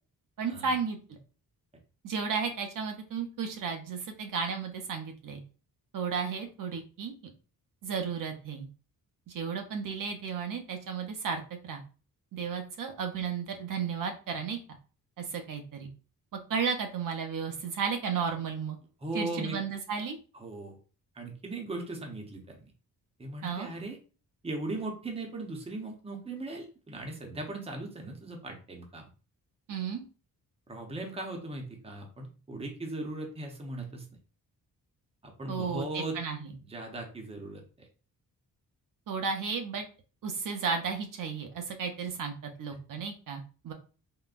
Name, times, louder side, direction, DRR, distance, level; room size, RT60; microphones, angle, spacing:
voice 1, 0.4-1.2 2.0-5.4 5.9-7.1 7.8-8.7 9.3-11.8 12.3-14.6 15.2-15.9 16.5-18.8 19.1-20.2 23.4-23.7 29.7-30.0 35.5-36.5 39.1-39.8 40.2-43.7, right 6 dB, 60° right, 4 dB, 0.6 m, -33 dB
voice 2, 19.0-19.6 20.3-20.8 21.1-22.7 23.2-24.0 24.4-29.1 30.7-34.1 35.2-36.2 36.7-37.9, right 2 dB, 15° right, 2 dB, 0.7 m, -38 dB
3.7 x 2.2 x 2.4 m, 0.36 s
cardioid pair, 115°, 36 cm